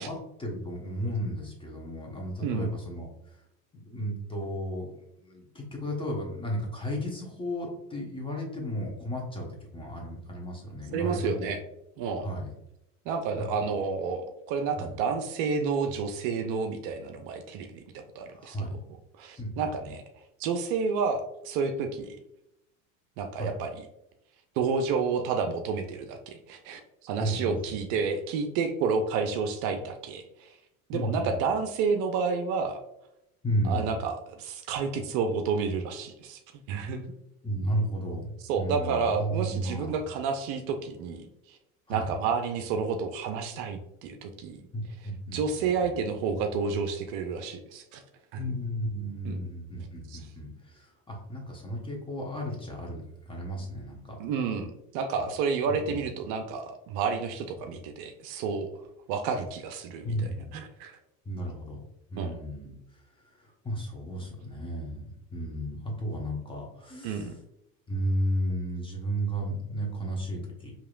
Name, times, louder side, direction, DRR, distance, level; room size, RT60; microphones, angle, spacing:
voice 1, 0.0-3.4 3.7-9.5 9.7-11.5 12.2-12.5 13.4-13.5 14.8-14.9 18.3-18.8 19.4-19.9 23.3-23.5 27.2-27.6 30.9-31.3 33.4-34.0 37.4-38.3 38.6-40.0 41.9-42.1 44.7-45.9 48.4-54.2 55.7-56.0 60.0-60.5 61.2-61.8 62.1-63.0 63.4-67.3 67.9-70.7, equal, 10° left, -1 dB, 1.2 m, -33 dB
voice 2, 10.9-11.6 12.0-12.3 13.1-18.6 19.2-20.0 20.4-22.2 23.2-23.7 24.6-30.6 30.9-32.8 33.6-36.4 36.7-37.0 38.5-41.6 41.9-44.6 45.3-48.0 48.3-48.4 49.2-49.4 50.1-50.2 54.2-58.7 59.1-61.0 62.2-62.4 67.0-67.4, right 5 dB, 55° right, 6 dB, 0.6 m, -30 dB
4.7 x 3.0 x 2.4 m, 0.84 s
hypercardioid pair, 90°, 41 cm